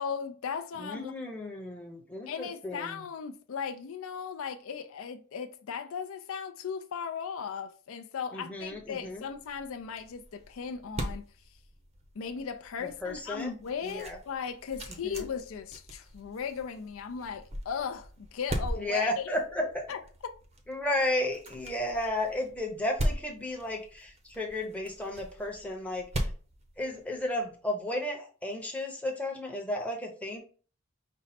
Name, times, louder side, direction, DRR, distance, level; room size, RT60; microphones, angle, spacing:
voice 1, 0.0-1.1 2.3-11.3 12.2-19.2 19.9-20.3, left 6 dB, 60° left, 0.4 m, -37 dB
voice 2, 0.8-3.0 8.3-9.2 12.8-13.5 13.8-14.2 15.0-15.3 18.8-19.6 20.7-26.3 26.8-30.4, left 1 dB, 5° left, 0.8 m, -33 dB
sound 1, 8.7-27.4, equal, 30° right, 0.6 m, -40 dB
5.3 x 2.0 x 4.1 m
head